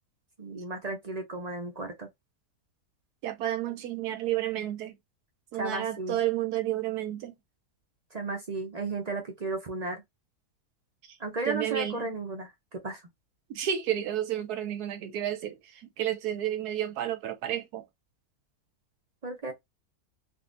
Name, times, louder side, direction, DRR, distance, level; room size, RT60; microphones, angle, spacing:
voice 1, 0.4-2.1 5.5-6.2 8.1-10.0 11.2-13.0 19.2-19.5, right 3 dB, 50° right, 0.5 m, -34 dB
voice 2, 3.2-4.9 5.5-7.4 11.1-11.2 11.5-12.1 13.5-17.8, right 12 dB, 80° right, 1.1 m, -31 dB
3.7 x 2.6 x 2.5 m
omnidirectional pair, 1.7 m